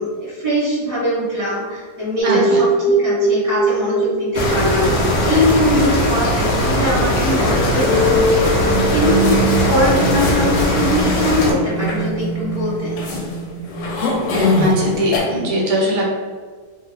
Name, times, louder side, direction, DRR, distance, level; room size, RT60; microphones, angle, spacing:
voice 1, 0.0-9.4 9.7-13.0, left 1 dB, 15° right, -9 dB, 1.1 m, -22 dB
sound 1, 2.2-15.3, right 1 dB, 40° left, 1.2 m, -23 dB
voice 2, 2.2-2.6 14.6-16.1, equal, 50° right, -3 dB, 0.6 m, -20 dB
sound 2, 4.3-11.5, equal, 60° left, 0.9 m, -19 dB
sound 3, 8.4-15.2, left 2 dB, 85° left, 1.2 m, -24 dB
2.7 x 2.4 x 3.2 m, 1.5 s
omnidirectional pair, 1.7 m